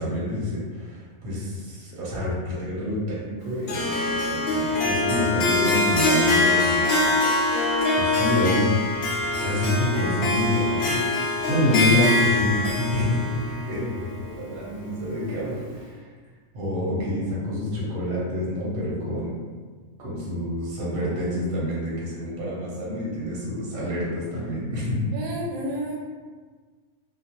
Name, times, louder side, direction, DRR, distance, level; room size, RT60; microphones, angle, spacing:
voice 1, 0.0-6.9 8.0-8.7 9.2-11.1 11.5-13.2 13.5-16.0 16.5-19.3 20.0-25.1, left 1 dB, 45° right, -7 dB, 0.8 m, -27 dB
Harp, 3.7-14.9, left 2 dB, 65° left, 0.6 m, -24 dB
voice 2, 15.3-15.7 25.1-26.0, right 1 dB, 85° right, -3 dB, 1.1 m, -32 dB
2.4 x 2.2 x 2.8 m, 1.5 s
omnidirectional pair, 1.5 m